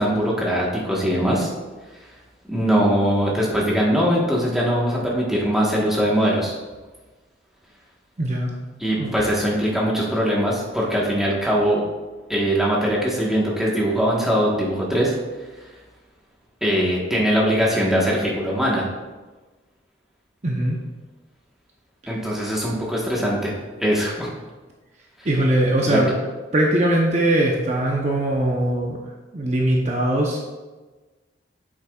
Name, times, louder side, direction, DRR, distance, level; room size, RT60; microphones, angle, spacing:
voice 1, 0.0-1.5 2.5-6.5 8.8-11.8 12.3-15.1 16.6-18.8 22.1-23.5 23.8-24.3 25.2-25.3 25.8-26.0, equal, ahead, -4 dB, 1.3 m, -21 dB
voice 2, 8.2-8.5 9.0-9.1 20.4-20.8 25.2-26.1 26.5-29.0 29.3-30.4, right 1 dB, 35° right, -1 dB, 0.8 m, -21 dB
8.7 x 7.0 x 2.4 m, 1.3 s
head